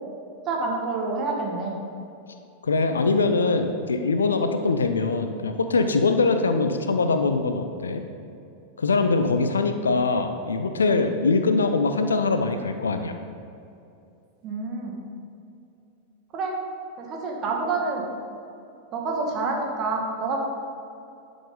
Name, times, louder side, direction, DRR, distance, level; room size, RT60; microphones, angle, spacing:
voice 1, 0.5-1.8 14.4-15.0 16.3-16.5 17.0-18.0 18.9-20.4, right 3 dB, 30° right, 0 dB, 1.6 m, -27 dB
voice 2, 2.6-8.0 8.8-13.1, left 3 dB, 70° left, 7 dB, 0.5 m, -23 dB
11.5 x 5.1 x 3.9 m, 2.6 s
figure-of-eight pair, 90°, 0 cm